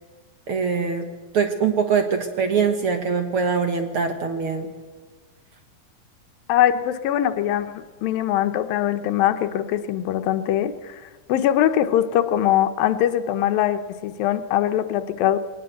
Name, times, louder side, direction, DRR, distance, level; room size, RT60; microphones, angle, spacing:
voice 1, 0.5-1.0 1.3-4.7, right 6 dB, 70° right, 6 dB, 1.3 m, -23 dB
voice 2, 6.5-15.4, left 11 dB, 80° left, 9 dB, 2.6 m, -22 dB
21.5 x 18.5 x 7.9 m, 1.4 s
omnidirectional pair, 4.1 m